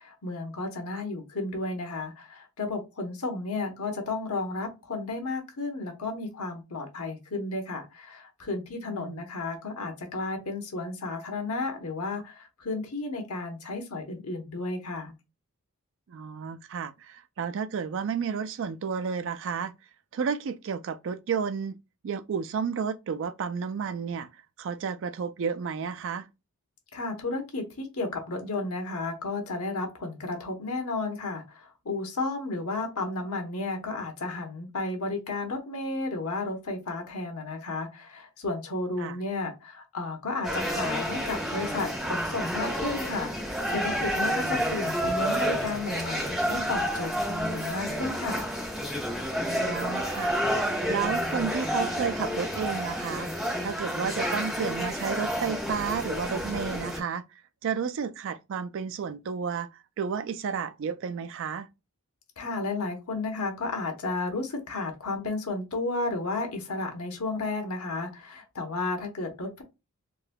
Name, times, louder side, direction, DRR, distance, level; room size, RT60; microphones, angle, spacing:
voice 1, 0.0-15.1 26.9-48.5 62.4-69.6, left 3 dB, 80° left, 1.0 m, -33 dB
voice 2, 8.9-9.2 16.1-19.7 20.1-21.7 22.0-24.3 24.6-26.3 39.0-39.2 49.4-50.3 50.9-53.3 53.6-57.2 57.6-59.7 60.0-61.7, right 6 dB, 60° right, 0.4 m, -32 dB
sound 1, 40.4-57.0, equal, ahead, 1.3 m, -30 dB
3.8 x 2.6 x 2.2 m
head